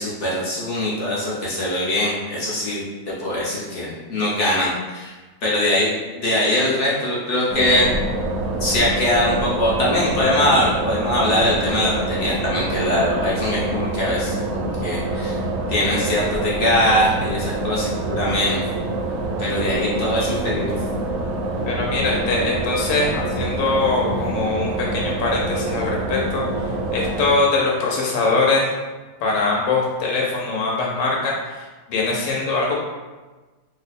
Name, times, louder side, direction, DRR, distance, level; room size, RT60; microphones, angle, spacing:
voice 1, 0.0-2.8 3.1-5.9 6.1-7.9 8.6-15.4 15.7-18.6 19.4-20.7, left 1 dB, 55° left, -6 dB, 0.9 m, -22 dB
sound 1, 7.5-27.3, right 2 dB, 70° right, 0.9 m, -26 dB
voice 2, 21.6-26.4 26.9-28.7 29.2-32.8, left 3 dB, 80° left, -3 dB, 1.3 m, -22 dB
3.1 x 2.1 x 4.0 m, 1.3 s
omnidirectional pair, 1.9 m